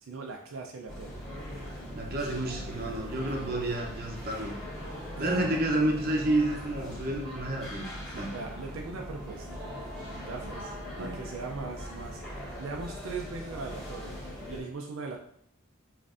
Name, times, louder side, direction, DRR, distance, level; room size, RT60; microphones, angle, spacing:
voice 1, 0.0-1.2 5.2-5.5 8.1-9.6 10.2-14.2 14.5-15.2, right 4 dB, 85° right, 1 dB, 0.5 m, -40 dB
sound 1, 0.9-14.6, equal, ahead, 1.6 m, -40 dB
voice 2, 1.9-4.5 5.2-7.9 8.2-8.3 10.9-11.2, right 1 dB, 50° right, 0 dB, 0.7 m, -30 dB
5.3 x 2.6 x 2.5 m, 0.66 s
head